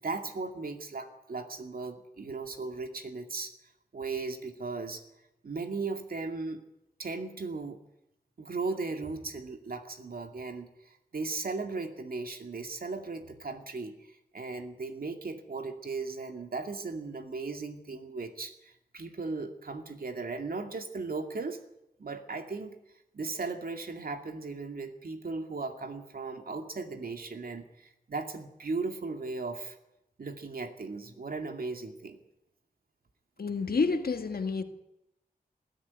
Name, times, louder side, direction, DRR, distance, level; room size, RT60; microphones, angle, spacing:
voice 1, 0.0-3.5 3.9-5.0 5.4-6.6 7.0-7.8 8.4-21.6 22.0-22.8 23.1-29.8 30.2-32.2, right 3 dB, 70° right, 5 dB, 2.4 m, -37 dB
voice 2, 33.4-34.6, left 4 dB, 75° left, 7 dB, 1.8 m, -29 dB
21.0 x 13.0 x 9.7 m, 0.87 s
wide cardioid pair, 75°, 16 cm